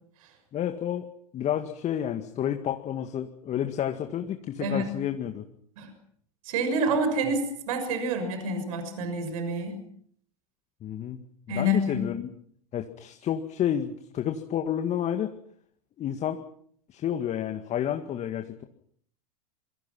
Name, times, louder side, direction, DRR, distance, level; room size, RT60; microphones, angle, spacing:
voice 1, 0.5-1.1 1.3-5.5 10.8-11.2 11.5-12.3 12.7-15.3 16.0-16.4 16.9-18.6, left 10 dB, 35° left, 6 dB, 2.0 m, -30 dB
voice 2, 6.4-9.8 11.5-12.1, right 1 dB, 65° right, 8 dB, 6.3 m, -28 dB
27.0 x 24.5 x 6.0 m, 0.62 s
hypercardioid pair, 85°, 20 cm